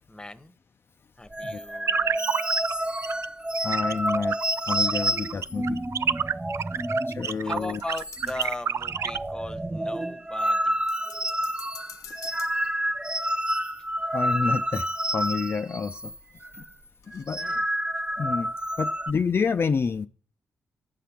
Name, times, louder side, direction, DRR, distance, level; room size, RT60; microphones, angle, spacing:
voice 1, 0.1-0.5 1.2-2.4 6.7-7.0 7.4-10.8 17.4-17.6, left 2 dB, 15° left, 1.2 m, -38 dB
sound 1, 1.3-7.3 7.6-7.7 8.0-8.5 8.8-16.2 16.4-16.7 17.1-19.1, right 1 dB, 15° right, 0.7 m, -29 dB
sound 2, 1.9-2.7 3.0-3.3 3.5-9.2, right 7 dB, 55° right, 0.5 m, -28 dB
voice 2, 3.6-4.4 4.7-5.8 7.1-7.8 14.1-14.9 15.1-16.1 16.5-16.6 17.1-17.4 18.2-18.5 18.8-20.1, left 5 dB, 45° left, 0.6 m, -28 dB
sound 3, 7.1-8.8 10.9-13.2 15.4-15.5 15.9-16.0 17.0-17.2, left 9 dB, 90° left, 1.0 m, -48 dB
10.5 x 5.8 x 8.5 m
cardioid pair, 65°, 5 cm